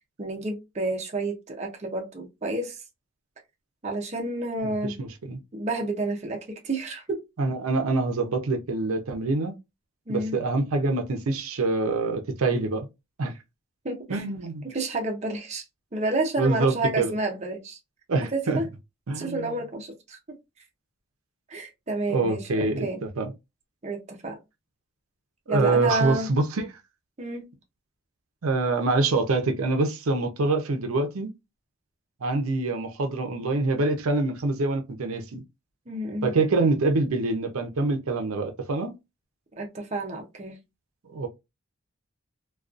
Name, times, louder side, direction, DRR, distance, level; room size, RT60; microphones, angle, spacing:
voice 1, 0.2-2.8 3.8-5.0 5.5-7.2 10.1-10.4 13.8-14.2 14.6-15.6 15.9-17.8 18.3-18.7 19.1-20.4 21.5-23.0 23.8-24.4 25.5-26.3 27.2-27.5 35.9-36.3 39.6-40.6, right 2 dB, 30° right, 0.5 m, -30 dB
voice 2, 5.0-5.4 7.4-9.5 10.1-12.9 13.2-13.3 14.1-14.6 16.4-17.1 18.1-18.6 19.1-19.5 22.1-23.3 25.5-26.7 28.4-31.3 32.2-35.4 36.2-38.9 41.1-41.3, right 3 dB, 80° right, 0.6 m, -25 dB
2.5 x 2.3 x 2.4 m
head